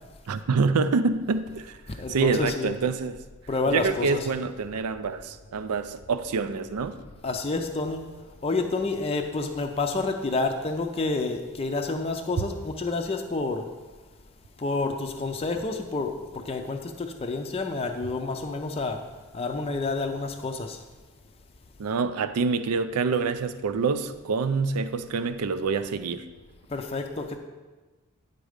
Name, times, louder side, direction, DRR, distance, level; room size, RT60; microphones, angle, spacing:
voice 1, 0.3-1.7 2.1-3.2 3.7-6.9 21.8-26.3, right 4 dB, 85° right, 12 dB, 0.4 m, -26 dB
voice 2, 1.9-2.8 3.5-4.3 7.2-8.0 8.4-13.6 14.6-19.0 19.3-20.8 26.7-27.4, left 3 dB, 25° left, 4 dB, 0.4 m, -29 dB
9.3 x 4.1 x 5.0 m, 1.2 s
head